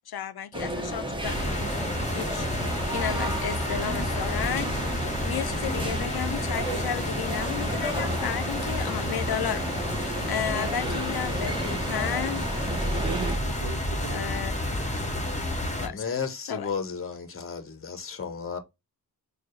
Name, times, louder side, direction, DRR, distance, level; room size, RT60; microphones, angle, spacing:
voice 1, 0.1-1.6 2.1-2.5 2.9-9.6 10.3-12.5 14.1-14.5 15.8-16.0 16.5-16.7, left 9 dB, 75° left, 0.5 m, -33 dB
sound 1, 0.5-13.4, right 1 dB, 15° right, 0.9 m, -32 dB
sound 2, 1.2-15.9, left 1 dB, 20° left, 1.2 m, -31 dB
voice 2, 13.0-15.5, right 5 dB, 55° right, 0.7 m, -39 dB
voice 3, 15.9-18.6, left 6 dB, 35° left, 0.8 m, -33 dB
4.4 x 2.4 x 3.0 m
wide cardioid pair, 55°, 38 cm